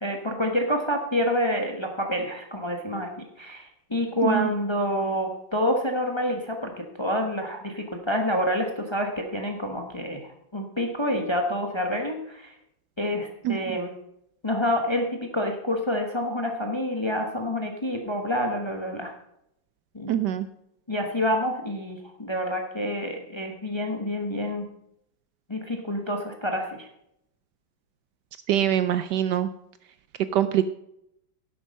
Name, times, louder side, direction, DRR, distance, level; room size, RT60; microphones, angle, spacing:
voice 1, 0.0-12.5 13.0-13.9 14.4-19.1 19.9-20.2 20.9-24.7 25.5-26.9, equal, 20° left, 3 dB, 0.9 m, -28 dB
voice 2, 20.1-20.5 28.5-29.5 30.3-30.7, right 11 dB, 75° right, 12 dB, 1.1 m, -23 dB
11.0 x 7.9 x 5.3 m, 0.77 s
omnidirectional pair, 2.1 m